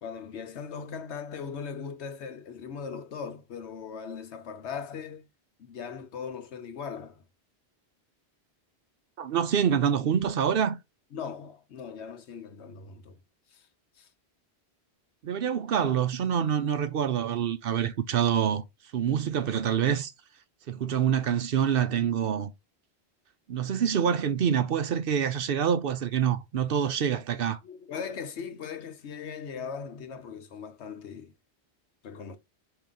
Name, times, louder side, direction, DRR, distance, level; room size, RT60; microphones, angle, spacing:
voice 1, 0.0-5.3 5.6-7.2 11.1-13.2 13.5-13.7 14.0-14.1 27.6-31.3 32.0-32.4, left 6 dB, 80° left, 1.1 m, -39 dB
voice 2, 9.2-10.8 15.2-18.6 18.9-20.1 20.7-22.5 23.5-27.6, right 8 dB, 65° right, 0.7 m, -26 dB
4.8 x 2.9 x 3.8 m
omnidirectional pair, 1.1 m